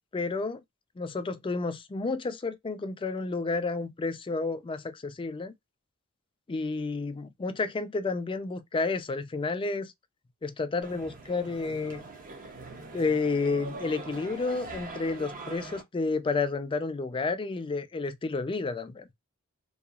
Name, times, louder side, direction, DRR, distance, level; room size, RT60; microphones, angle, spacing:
voice 1, 0.1-0.6 1.0-5.5 6.5-9.9 10.4-12.0 12.9-19.1, left 3 dB, 25° left, 0.4 m, -31 dB
sound 1, 10.8-15.8, right 3 dB, 40° right, 0.6 m, -42 dB
2.8 x 2.3 x 2.3 m
head